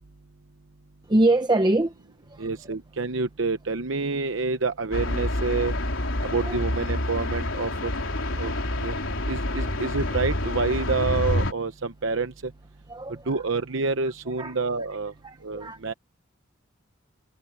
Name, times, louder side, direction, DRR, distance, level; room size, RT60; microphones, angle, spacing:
voice 1, 1.1-1.9 2.3-2.5 6.4-6.6 12.9-13.4 14.4-14.5 15.2-15.8, right 2 dB, 20° right, 0.8 m, -24 dB
voice 2, 2.4-5.7 6.3-7.9 8.4-8.5 8.8-9.0 9.3-12.5 13.3-15.1 15.4-15.9, right 4 dB, 65° right, 0.9 m, -28 dB
sound 1, 4.9-11.5, left 1 dB, 70° left, 3.9 m, -27 dB
head